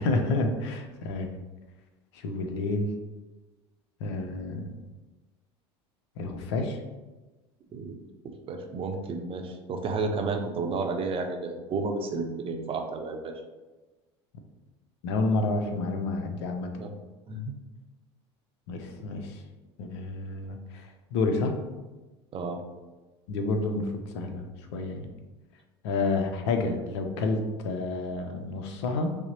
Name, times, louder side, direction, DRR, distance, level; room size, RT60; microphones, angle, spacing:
voice 1, 0.0-1.3 2.1-2.9 4.0-4.7 6.2-6.8 15.0-16.7 18.7-19.4 19.8-21.6 23.3-25.1 25.8-29.2, left 3 dB, 75° left, 5 dB, 0.6 m, -29 dB
voice 2, 8.5-13.3 16.8-16.9 17.3-17.4 22.3-22.6, right 3 dB, 40° right, 4 dB, 0.6 m, -31 dB
5.6 x 2.0 x 2.8 m, 1.2 s
hypercardioid pair, 80°, 15 cm